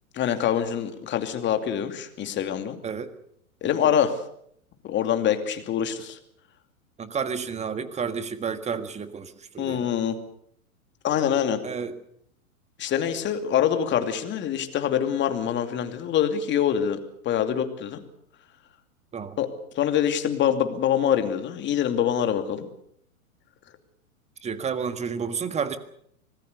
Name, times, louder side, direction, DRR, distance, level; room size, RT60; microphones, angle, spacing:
voice 1, 0.1-2.8 3.6-4.2 4.8-6.2 9.6-10.2 11.0-11.6 12.8-18.0 19.4-19.5 19.7-22.7, left 9 dB, 25° left, 8 dB, 2.6 m, -25 dB
voice 2, 7.0-9.9 11.6-11.9 19.1-19.4 24.4-25.8, right 6 dB, 15° right, 11 dB, 1.7 m, -31 dB
25.0 x 19.5 x 6.8 m, 0.69 s
figure-of-eight pair, 105°, 44 cm